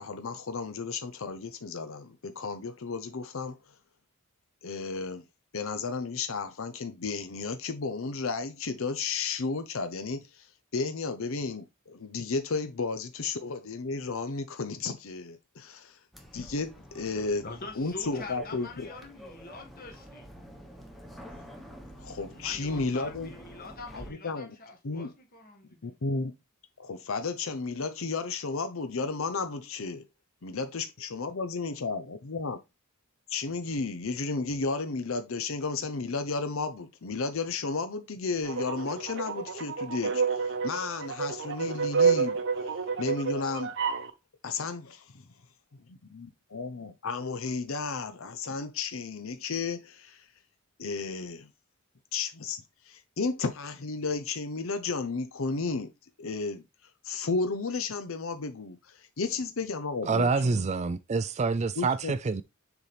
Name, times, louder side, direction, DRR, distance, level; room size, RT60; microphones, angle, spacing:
voice 1, 0.0-3.6 4.6-5.2 5.5-16.0 16.3-17.4 17.8-18.9 21.3-21.4 22.0-23.3 23.9-24.6 24.8-25.1 25.8-26.3 26.8-30.0 30.4-32.6 33.3-43.7 44.4-44.8 45.9-50.3 50.8-51.5 52.1-55.9 56.2-56.6 57.0-60.6 61.8-62.1, left 4 dB, 65° left, 0.7 m, -33 dB
sound 1, 16.1-24.1, equal, ahead, 1.1 m, -48 dB
voice 2, 17.4-20.3 22.3-26.0, left 3 dB, 45° left, 1.7 m, -45 dB
sound 2, 38.4-44.1, right 5 dB, 60° right, 0.8 m, -29 dB
voice 3, 60.1-62.4, right 4 dB, 30° right, 0.4 m, -27 dB
7.0 x 4.1 x 3.3 m
head